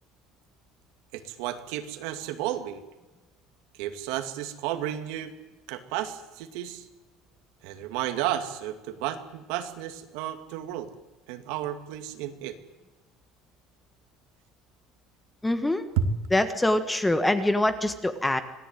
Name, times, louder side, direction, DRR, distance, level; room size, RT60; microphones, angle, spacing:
voice 1, 1.1-2.8 3.8-5.3 5.7-6.9 7.6-10.9 11.3-12.6 16.0-16.1, right 11 dB, 75° right, 8 dB, 2.4 m, -32 dB
voice 2, 15.4-15.8 16.3-18.4, left 1 dB, 5° left, 10 dB, 1.4 m, -24 dB
26.0 x 18.0 x 9.2 m, 1.1 s
cardioid pair, 165°, 0 cm